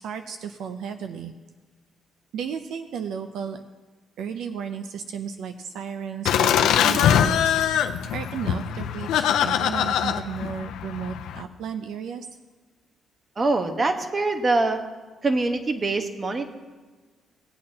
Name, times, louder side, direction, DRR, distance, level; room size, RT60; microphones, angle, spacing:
voice 1, 0.0-1.3 2.3-3.6 4.2-7.5 7.8-12.3, right 7 dB, 80° right, 7 dB, 0.6 m, -34 dB
Laughter, 6.2-11.4, left 9 dB, 85° left, 0.5 m, -23 dB
voice 2, 13.4-14.8 15.2-16.5, right 3 dB, 35° right, 6 dB, 1.2 m, -24 dB
18.5 x 8.6 x 2.9 m, 1.3 s
cardioid pair, 90°, 0 cm